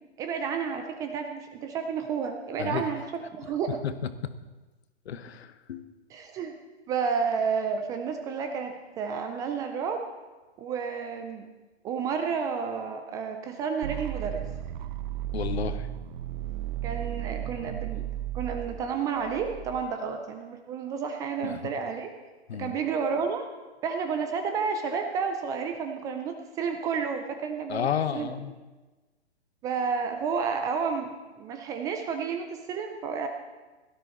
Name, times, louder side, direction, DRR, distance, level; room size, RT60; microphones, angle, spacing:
voice 1, 0.2-3.0 3.3-3.8 6.1-6.6 6.9-10.1 10.6-11.5 11.8-14.4 16.8-18.1 18.3-22.1 22.5-23.5 23.8-28.3 29.6-33.3, right 6 dB, 10° right, 6 dB, 0.4 m, -31 dB
voice 2, 5.0-6.0 15.3-15.9 21.4-21.6 22.5-22.7 27.7-28.5, left 8 dB, 65° left, 11 dB, 1.2 m, -31 dB
sound 1, 13.8-19.8, right 12 dB, 45° right, 0.7 m, -35 dB
17.0 x 12.5 x 4.2 m, 1.2 s
hypercardioid pair, 130°, 34 cm